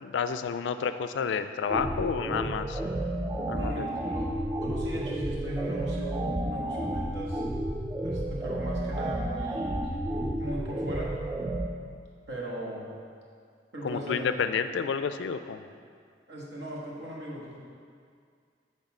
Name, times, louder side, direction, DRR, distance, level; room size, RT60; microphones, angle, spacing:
voice 1, 0.0-2.8 3.5-3.9 13.8-15.6, left 6 dB, 75° left, 10 dB, 0.3 m, -30 dB
sound 1, 1.7-11.7, right 1 dB, 15° right, 0.3 m, -31 dB
voice 2, 3.5-4.3 4.6-7.4 8.0-11.2 12.3-12.9 13.7-14.2 16.3-17.6, equal, 70° right, -4 dB, 1.6 m, -38 dB
8.1 x 3.6 x 6.0 m, 2.2 s
head